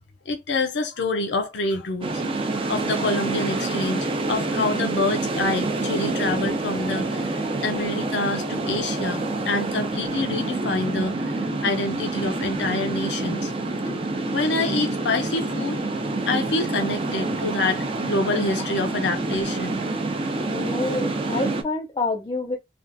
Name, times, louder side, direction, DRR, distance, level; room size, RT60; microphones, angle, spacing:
voice 1, 0.3-2.1 2.6-11.3 11.6-13.5 14.3-15.8 16.3-20.0, left 2 dB, 75° left, 0.6 m, -27 dB
sound 1, 2.0-21.6, right 2 dB, 30° right, 0.5 m, -27 dB
voice 2, 20.5-22.6, left 3 dB, 25° left, 0.4 m, -27 dB
3.3 x 2.4 x 2.6 m
head